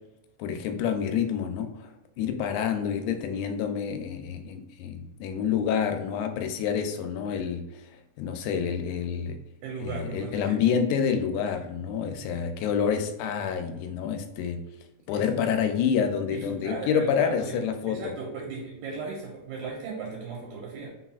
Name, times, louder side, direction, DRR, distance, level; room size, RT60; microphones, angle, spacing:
voice 1, 0.4-1.9 2.2-7.8 8.2-9.4 9.8-14.6 15.1-18.1, left 7 dB, 80° left, 7 dB, 2.0 m, -28 dB
voice 2, 9.6-10.6 15.1-15.3 16.3-20.9, right 4 dB, 75° right, -3 dB, 2.0 m, -37 dB
4.1 x 4.0 x 2.3 m, 0.98 s
omnidirectional pair, 3.6 m